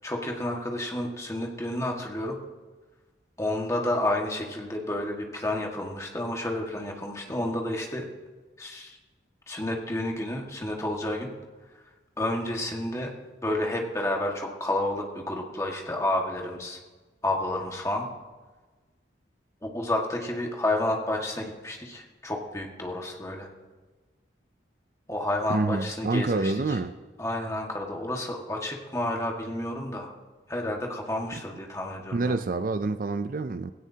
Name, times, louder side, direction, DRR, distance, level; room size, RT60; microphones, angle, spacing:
voice 1, 0.0-2.4 3.4-8.1 8.6-9.0 9.5-11.3 12.2-13.1 13.4-16.8 17.2-18.1 19.6-23.5 25.1-26.8 27.2-30.1 30.5-32.4, left 1 dB, 15° left, 0 dB, 1.7 m, -30 dB
voice 2, 25.5-26.9 31.3-31.4 32.1-33.7, right 3 dB, 50° right, 11 dB, 0.4 m, -27 dB
19.0 x 16.5 x 2.8 m, 1.3 s
head